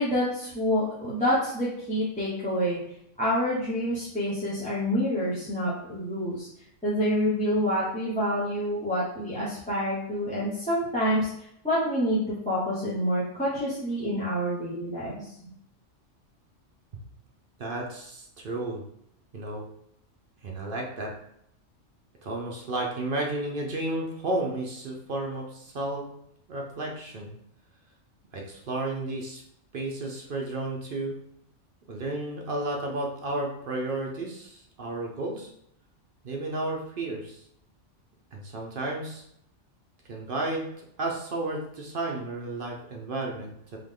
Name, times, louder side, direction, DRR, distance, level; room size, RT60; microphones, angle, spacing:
voice 1, 0.0-2.8 3.2-6.5 6.8-11.3 11.6-15.5, equal, 5° left, -10 dB, 1.0 m, -27 dB
voice 2, 17.6-18.8 19.3-19.6 20.4-21.1 22.2-26.1 26.5-27.3 28.3-29.4 29.7-31.2 31.9-35.5 36.2-37.4 38.3-39.2 40.1-40.7 41.0-43.8, right 2 dB, 50° right, 0 dB, 0.8 m, -32 dB
3.7 x 3.0 x 3.7 m, 0.72 s
omnidirectional pair, 1.3 m